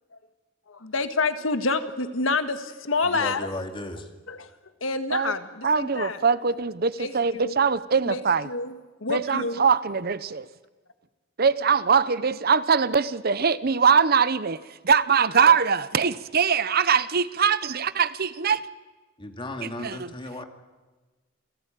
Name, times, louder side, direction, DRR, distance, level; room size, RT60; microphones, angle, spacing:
voice 1, 0.7-3.5 4.3-4.5 4.8-6.2 7.0-7.1 7.4-7.5 8.1-8.8 9.0-9.7, left 3 dB, 90° left, 1.7 m, -28 dB
voice 2, 3.0-4.1 19.2-20.4, left 1 dB, 25° left, 2.4 m, -35 dB
voice 3, 5.6-8.5 9.1-10.5 11.4-14.6 14.8-18.6 19.6-20.1, right 6 dB, 50° right, 0.8 m, -22 dB
28.0 x 17.0 x 9.1 m
head